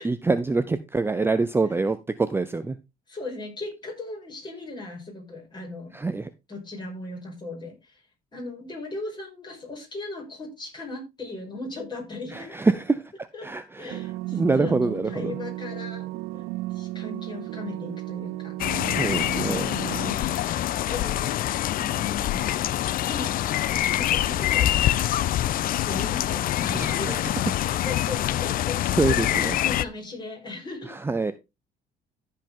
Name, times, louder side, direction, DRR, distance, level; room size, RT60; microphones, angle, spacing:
voice 1, 0.0-2.8 5.9-6.3 12.3-13.0 13.4-14.0 14.3-15.3 18.9-19.7 26.7-27.4 28.2-28.4 28.8-29.6 30.9-31.3, right 3 dB, 15° right, 11 dB, 0.6 m, -25 dB
voice 2, 3.1-6.0 6.5-8.1 8.3-12.5 13.3-13.5 13.8-18.6 20.0-21.4 21.8-22.6 23.1-23.3 23.9-24.8 25.7-27.1 27.9-28.8 29.1-30.9, left 3 dB, 25° left, 1 dB, 5.6 m, -38 dB
sound 1, 13.9-20.1, right 18 dB, 90° right, 0.4 m, -34 dB
sound 2, 18.6-29.8, left 13 dB, 60° left, 0.5 m, -25 dB
14.5 x 5.4 x 3.7 m, 0.24 s
cardioid pair, 110°, 17 cm